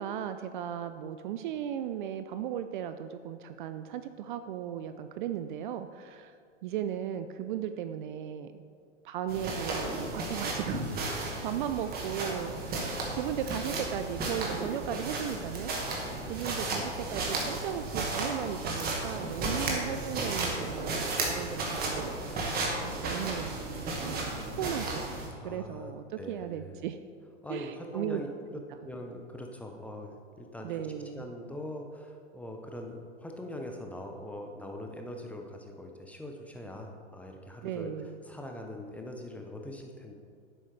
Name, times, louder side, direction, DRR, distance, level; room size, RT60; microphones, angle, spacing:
voice 1, 0.0-6.3 6.6-8.6 9.0-12.9 13.2-15.7 16.3-22.2 23.0-25.1 25.4-27.0 27.5-28.2 30.6-31.3 37.6-38.2, right 10 dB, 45° right, 10 dB, 0.4 m, -36 dB
sound 1, 9.3-25.3, right 2 dB, 25° right, 1.6 m, -34 dB
voice 2, 10.8-11.4 15.8-16.3 16.7-17.1 25.4-26.8 27.4-28.3 28.8-30.9 31.1-37.9 38.3-40.1, left 1 dB, 5° left, 2 dB, 0.6 m, -42 dB
10.0 x 7.7 x 3.2 m, 2.2 s
hypercardioid pair, 110°, 36 cm